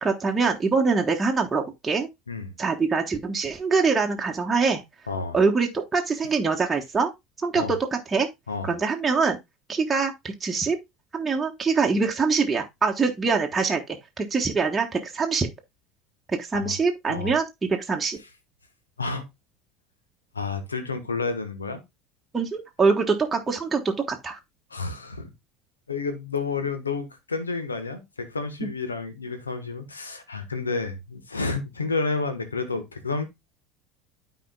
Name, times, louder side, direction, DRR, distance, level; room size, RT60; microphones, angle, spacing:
voice 1, 0.0-2.1 2.6-4.8 5.3-7.1 7.4-8.3 8.7-9.4 9.7-10.1 10.4-10.8 11.1-13.8 14.2-15.5 16.4-18.2 22.3-23.8 24.1-24.4, right 4 dB, 15° right, 1.2 m, -24 dB
voice 2, 5.1-5.4 7.5-7.8 8.5-8.7 16.5-16.7 17.1-17.3 19.0-19.3 20.3-21.8 24.7-25.3 25.9-33.2, left 4 dB, 80° left, 1.2 m, -30 dB
12.5 x 4.7 x 2.3 m
figure-of-eight pair, 70°, 0 cm